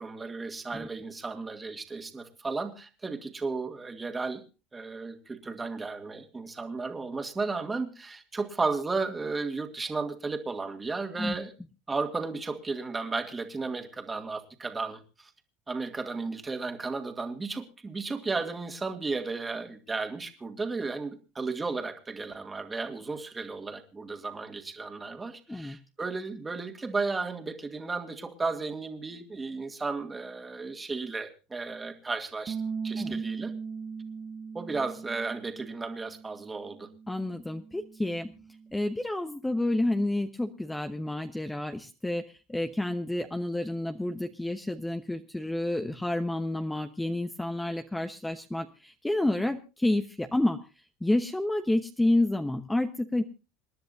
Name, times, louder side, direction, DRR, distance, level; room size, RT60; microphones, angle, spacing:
voice 1, 0.0-4.4 4.7-11.5 11.9-15.3 15.7-32.6 32.8-33.5 34.5-36.9, right 4 dB, 20° right, 5 dB, 2.2 m, -34 dB
Bass guitar, 32.5-38.7, right 5 dB, 40° right, 1.0 m, -39 dB
voice 2, 37.1-38.3 38.7-50.6 51.0-53.2, left 1 dB, 10° left, 6 dB, 1.0 m, -29 dB
27.5 x 10.5 x 2.7 m, 0.32 s
supercardioid pair, 95°, 0 cm